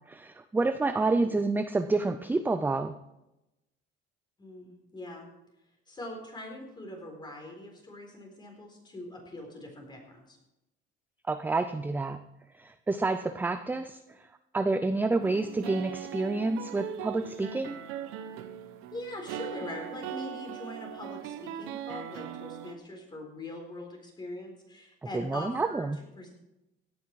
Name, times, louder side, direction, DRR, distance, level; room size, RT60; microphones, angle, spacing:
voice 1, 0.1-3.0 11.3-12.2 12.5-14.3 14.5-17.8 25.1-26.0, right 3 dB, 10° right, 10 dB, 0.5 m, -29 dB
voice 2, 0.9-1.4 4.4-5.3 5.9-10.4 18.9-25.8 26.2-26.3, left 1 dB, 20° left, 2 dB, 4.1 m, -42 dB
sound 1, 15.2-22.7, right 10 dB, 90° right, 0.9 m, -40 dB
17.0 x 9.6 x 4.7 m, 0.93 s
cardioid pair, 135°, 21 cm